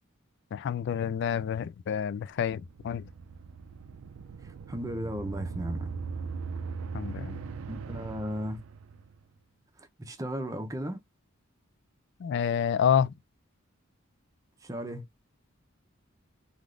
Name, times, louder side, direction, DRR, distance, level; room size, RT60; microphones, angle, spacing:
voice 1, 0.5-3.1 6.9-7.4 12.2-13.1, left 8 dB, 55° left, 0.3 m, -28 dB
sound 1, 2.3-9.2, right 5 dB, 80° right, 0.4 m, -39 dB
voice 2, 4.7-5.9 7.7-8.6 9.8-11.0 14.6-15.0, equal, 15° right, 0.6 m, -35 dB
3.4 x 2.4 x 2.4 m
head